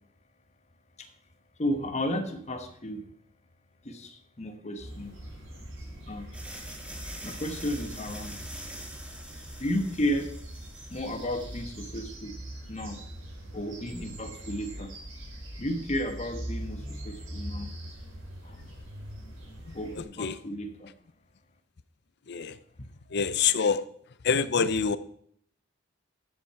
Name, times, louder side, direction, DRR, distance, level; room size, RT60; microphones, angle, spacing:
voice 1, 1.6-3.0 3.8-5.1 6.1-6.3 7.2-8.4 9.6-10.3 10.9-12.4 12.7-13.0 13.5-14.9 15.6-17.7 18.4-18.6 19.7-20.9, left 1 dB, 35° left, 6 dB, 1.2 m, -33 dB
sound 1, 4.8-20.0, right 1 dB, 80° right, 4.8 m, -42 dB
Magic Chaos Attack, 6.3-12.0, right 1 dB, 5° right, 1.5 m, -45 dB
voice 2, 20.0-20.4 22.3-22.6 23.1-23.8 24.2-25.0, left 6 dB, 55° left, 14 dB, 0.6 m, -26 dB
13.5 x 7.2 x 4.6 m, 0.65 s
head